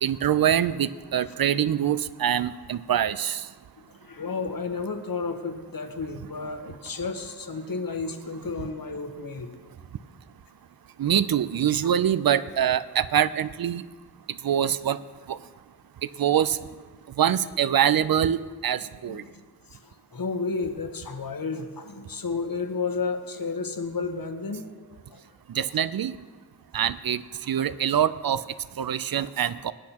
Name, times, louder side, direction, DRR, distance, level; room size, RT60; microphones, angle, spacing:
voice 1, 0.0-3.4 11.0-13.8 14.4-15.0 15.3-15.4 16.2-16.6 17.2-19.2 25.5-26.1 26.7-28.4 28.8-29.7, right 9 dB, 65° right, 16 dB, 0.5 m, -24 dB
voice 2, 3.8-9.5 17.7-17.8 18.8-19.3 19.7-25.2, left 4 dB, 60° left, 6 dB, 1.1 m, -32 dB
19.0 x 8.6 x 2.9 m, 1.4 s
wide cardioid pair, 45°, 39 cm